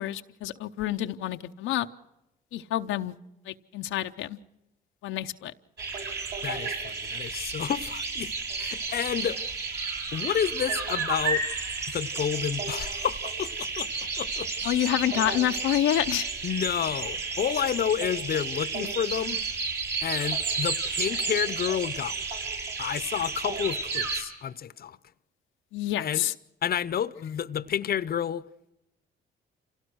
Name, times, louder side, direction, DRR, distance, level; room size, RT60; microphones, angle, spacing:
voice 1, 0.0-1.9 2.5-3.1 3.5-4.4 5.0-5.5 14.6-16.3 25.7-26.3, left 13 dB, 90° left, 0.8 m, -28 dB
sound 1, 5.8-24.2, right 4 dB, 60° right, 6.1 m, -32 dB
voice 2, 6.4-8.3 8.6-9.4 10.1-11.4 11.9-14.5 16.4-19.4 20.0-22.3 22.8-25.0 26.0-26.2 26.6-28.4, left 9 dB, 50° left, 0.8 m, -30 dB
26.5 x 17.5 x 6.3 m
cardioid pair, 90°, 20 cm